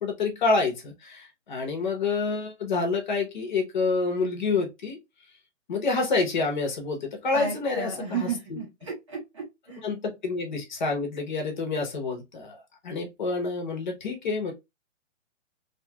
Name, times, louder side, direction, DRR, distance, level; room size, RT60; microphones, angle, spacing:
voice 1, 0.0-5.0 5.7-8.6 9.8-14.5, left 3 dB, 35° left, 0.9 m, -28 dB
voice 2, 7.3-9.8, right 6 dB, 25° right, 0.7 m, -33 dB
2.8 x 2.4 x 2.7 m
hypercardioid pair, 165°, 38 cm